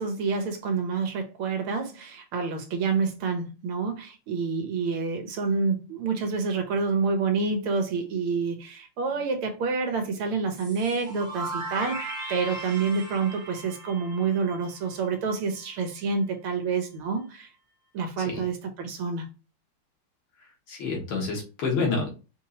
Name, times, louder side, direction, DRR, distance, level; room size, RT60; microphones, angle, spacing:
voice 1, 0.0-17.5 17.9-19.3, right 4 dB, 80° right, 1.9 m, -28 dB
sound 1, 10.5-15.3, right 2 dB, 25° right, 1.1 m, -37 dB
voice 2, 20.7-22.1, left 4 dB, 75° left, 2.2 m, -28 dB
5.3 x 3.0 x 2.8 m
omnidirectional pair, 2.3 m